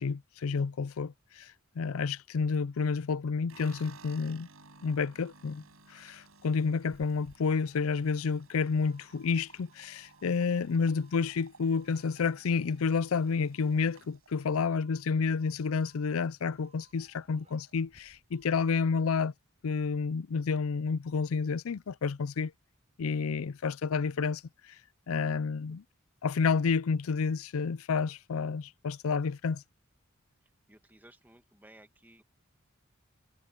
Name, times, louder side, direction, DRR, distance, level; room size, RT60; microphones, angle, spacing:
voice 1, 0.0-1.5 1.8-4.5 4.8-5.6 5.9-19.3 19.6-22.5 23.0-24.4 25.1-25.8 26.2-29.6, left 5 dB, 80° left, 0.5 m, -30 dB
sound 1, 3.5-15.7 16.1-16.7 17.0-17.1 17.3-18.1, right 4 dB, 85° right, 5.3 m, -58 dB
Doorbell, 6.1-18.9, right 3 dB, 30° right, 6.6 m, -66 dB
voice 2, 30.7-32.2, right 1 dB, 10° right, 1.9 m, -58 dB
head